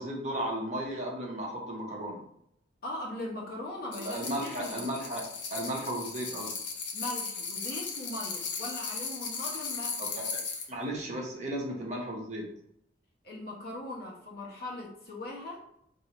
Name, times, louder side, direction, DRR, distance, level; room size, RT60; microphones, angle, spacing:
voice 1, 0.0-2.2 3.9-5.2 5.5-6.5 10.0-10.4 10.7-12.5, right 1 dB, 40° right, -2 dB, 0.9 m, -35 dB
voice 2, 2.8-4.8 6.9-10.0 13.2-15.6, left 1 dB, 55° left, -2 dB, 1.1 m, -39 dB
sound 1, 3.9-10.7, left 5 dB, 70° left, 0.8 m, -37 dB
4.6 x 2.7 x 3.0 m, 0.73 s
head